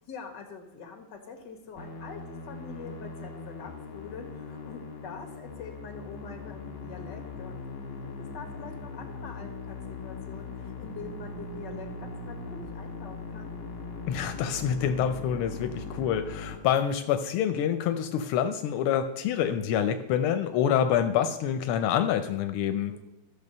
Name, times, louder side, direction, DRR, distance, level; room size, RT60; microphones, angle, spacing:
voice 1, 0.0-7.6 8.2-13.5 22.7-23.0, left 5 dB, 55° left, 3 dB, 2.3 m, -44 dB
Musical instrument, 1.8-16.6, left 3 dB, 70° left, 2.4 m, -40 dB
voice 2, 14.1-23.0, left 9 dB, 90° left, 8 dB, 1.5 m, -27 dB
14.0 x 6.7 x 5.4 m, 0.93 s
omnidirectional pair, 2.3 m